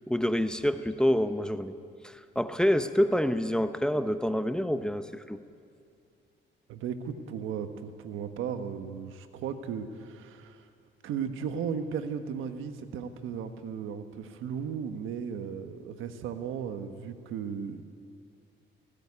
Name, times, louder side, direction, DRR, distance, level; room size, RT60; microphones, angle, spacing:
voice 1, 0.1-1.8 2.0-5.4, equal, 5° left, 10 dB, 0.9 m, -27 dB
voice 2, 6.7-10.7 11.0-17.8, right 7 dB, 90° right, 8 dB, 1.4 m, -36 dB
17.5 x 16.5 x 9.7 m, 2.5 s
cardioid pair, 90°, 20 cm